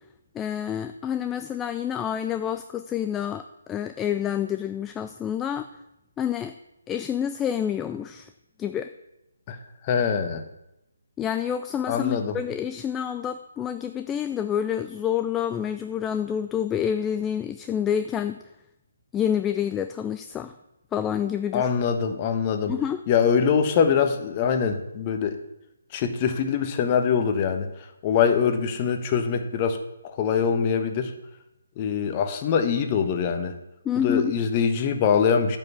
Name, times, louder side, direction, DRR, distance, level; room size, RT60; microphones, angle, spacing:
voice 1, 0.3-5.7 6.2-6.6 6.9-8.3 8.6-8.9 11.2-18.4 19.1-20.5 20.9-21.7 22.7-23.0 33.8-34.3, left 9 dB, 10° left, 9 dB, 0.4 m, -28 dB
voice 2, 9.8-10.4 11.9-12.4 21.5-22.7 23.1-25.4 25.9-27.7 28.0-29.8 30.0-31.1 31.8-33.5 33.9-35.6, left 6 dB, 30° left, 7 dB, 1.2 m, -23 dB
9.0 x 5.8 x 8.1 m, 0.89 s
figure-of-eight pair, 150°, 0 cm